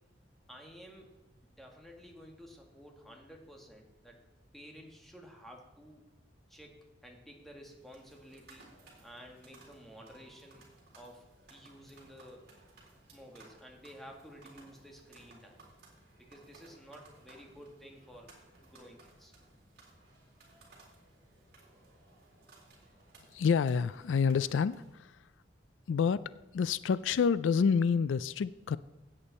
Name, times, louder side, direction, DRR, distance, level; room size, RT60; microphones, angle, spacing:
voice 1, 0.5-1.1 1.4-4.2 4.5-6.1 6.5-8.7 9.0-10.7 11.0-12.5 13.1-15.6 16.2-18.3 18.6-19.3, equal, ahead, 0 dB, 2.0 m, -53 dB
sound 1, 7.7-25.0, right 3 dB, 60° right, 4.0 m, -60 dB
voice 2, 23.3-25.2 25.9-28.8, left 6 dB, 80° left, 17 dB, 0.4 m, -28 dB
16.0 x 8.8 x 4.2 m, 1.1 s
head